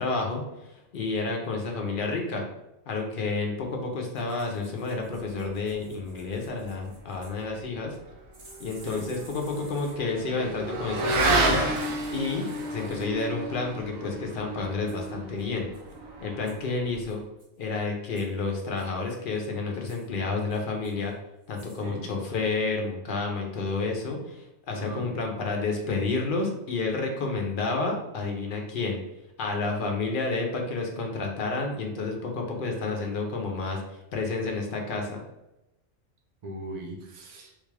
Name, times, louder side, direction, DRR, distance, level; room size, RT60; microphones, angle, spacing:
voice 1, 0.0-2.5 2.9-7.9 8.6-11.7 12.1-15.7 16.2-17.2 17.6-21.1 21.5-29.0 29.4-33.8 34.1-35.2, left 3 dB, 50° left, 1 dB, 0.7 m, -30 dB
sound 1, 4.1-7.4 8.3-10.2 11.7-13.3 14.9-15.1 15.4-15.5 15.7-16.0 16.5-16.7 17.0-17.7 18.2-18.3 18.8-19.4 19.8-20.1 20.5-21.1 21.4-21.8 22.1-22.2, right 2 dB, 65° right, 1.3 m, -54 dB
Motorcycle / Accelerating revving vroom, 8.3-17.0, right 2 dB, 90° right, 1.1 m, -31 dB
voice 2, 24.7-25.1 36.4-37.5, right 1 dB, 40° right, 0 dB, 0.6 m, -38 dB
3.7 x 2.3 x 3.2 m, 0.89 s
omnidirectional pair, 1.4 m